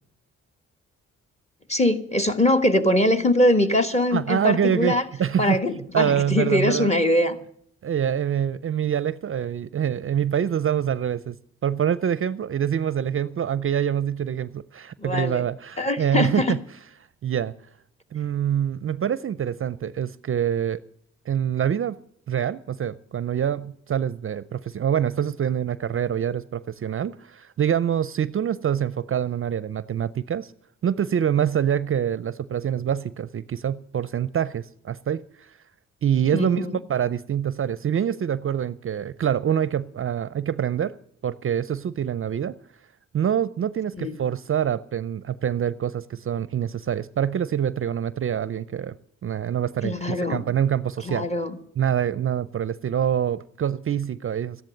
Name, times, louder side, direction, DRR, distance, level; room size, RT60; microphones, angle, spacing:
voice 1, 1.7-5.0 5.4-7.4 15.0-15.4 15.8-16.6 36.3-36.8 44.0-44.2 49.8-50.5 51.0-51.6, left 1 dB, 20° left, 9 dB, 1.5 m, -22 dB
voice 2, 4.1-5.6 5.9-6.9 7.8-11.4 11.6-16.6 17.2-17.5 18.1-20.8 21.3-22.0 22.3-30.5 30.8-35.5 36.0-41.0 41.2-42.5 43.1-49.0 49.2-51.3 51.8-54.6, right 9 dB, 45° right, 17 dB, 0.5 m, -25 dB
13.5 x 10.5 x 7.8 m, 0.67 s
cardioid pair, 75°, 30 cm